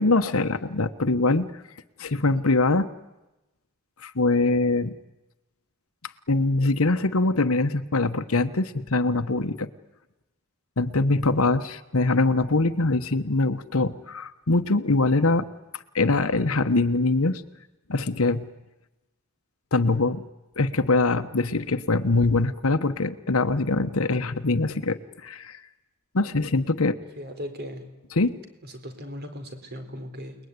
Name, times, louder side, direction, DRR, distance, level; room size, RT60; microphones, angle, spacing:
voice 1, 0.0-1.5 2.0-2.9 4.0-4.9 6.3-9.7 10.8-15.5 15.7-17.4 17.9-18.4 19.7-20.2 20.6-25.6 26.1-27.0 28.2-28.3, left 3 dB, 75° left, 7 dB, 1.2 m, -23 dB
voice 2, 27.2-27.9 28.6-30.4, equal, 50° right, 7 dB, 4.1 m, -37 dB
29.5 x 20.5 x 9.7 m, 1.0 s
head